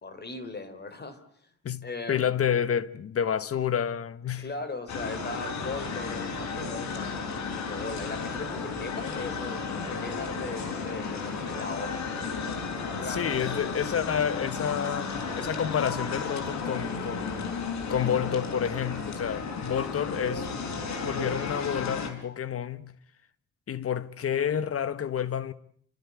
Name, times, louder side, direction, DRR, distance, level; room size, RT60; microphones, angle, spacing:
voice 1, 0.0-1.2 1.8-2.3 4.4-12.1 12.8-13.9, left 3 dB, 35° left, 3.7 m, -39 dB
voice 2, 1.6-4.5 13.1-17.5 17.9-20.5 21.0-22.9 23.7-25.5, left 8 dB, 50° left, 1.4 m, -29 dB
sound 1, 4.9-22.1, left 4 dB, 65° left, 5.4 m, -33 dB
29.5 x 14.0 x 9.7 m
cardioid pair, 90°, 30 cm